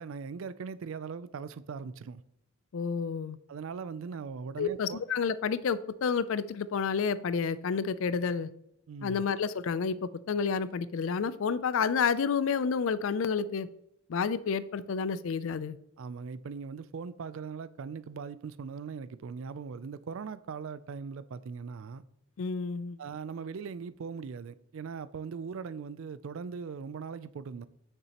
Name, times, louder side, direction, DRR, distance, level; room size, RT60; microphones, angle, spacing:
voice 1, 0.0-2.2 3.5-5.0 8.9-9.2 16.0-22.0 23.0-27.7, right 5 dB, 65° right, 0.4 m, -40 dB
voice 2, 2.7-3.4 4.6-8.5 9.0-13.7 14.1-15.8 22.4-23.0, left 6 dB, 65° left, 0.4 m, -30 dB
8.7 x 6.7 x 2.9 m
head